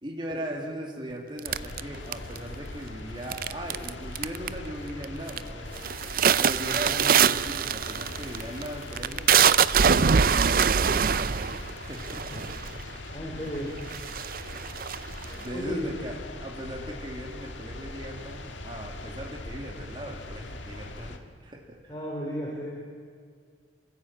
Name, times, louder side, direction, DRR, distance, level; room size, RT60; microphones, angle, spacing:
voice 1, 0.0-5.8 6.4-9.3 9.8-12.4 14.2-14.9 15.4-21.9, equal, 25° right, 0 dB, 2.6 m, -39 dB
sound 1, 1.4-21.2, left 2 dB, 90° left, 1.8 m, -41 dB
sound 2, 1.5-2.6 3.3-3.9 4.2-4.7 5.0-5.4 5.8-12.8 13.5-13.6 13.9-15.5, right 7 dB, 50° right, 0.5 m, -23 dB
voice 2, 13.1-13.7 15.3-15.9 21.9-22.7, equal, 25° left, -3 dB, 3.3 m, -34 dB
27.0 x 15.0 x 8.9 m, 2.1 s
head